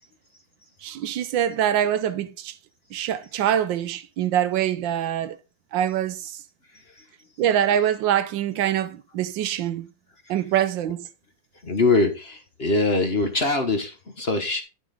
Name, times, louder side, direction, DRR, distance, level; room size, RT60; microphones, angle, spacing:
voice 1, 0.8-2.5 2.9-5.4 5.7-6.4 7.4-9.9 10.3-11.1, right 10 dB, 75° right, 1.4 m, -24 dB
voice 2, 6.7-7.1 10.2-10.4 11.6-14.6, left 3 dB, 35° left, 1.2 m, -24 dB
10.5 x 6.3 x 3.8 m
omnidirectional pair, 2.1 m